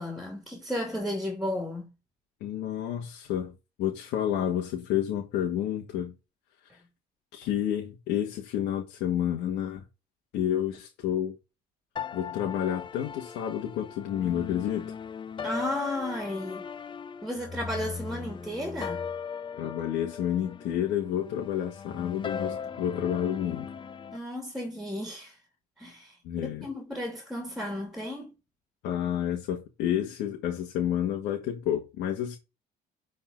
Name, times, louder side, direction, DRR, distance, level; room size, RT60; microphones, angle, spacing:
voice 1, 0.0-1.9 15.4-16.6 17.2-19.0 24.1-25.4 25.8-26.2 26.6-28.3, left 1 dB, ahead, 2.8 m, -33 dB
voice 2, 2.4-6.1 7.3-9.8 10.3-11.4 12.1-14.9 19.5-23.7 26.2-26.7 28.8-32.4, left 10 dB, 85° left, 1.8 m, -30 dB
sound 1, 12.0-24.2, left 6 dB, 30° left, 0.7 m, -38 dB
10.0 x 4.2 x 3.9 m
cardioid pair, 110°, 17 cm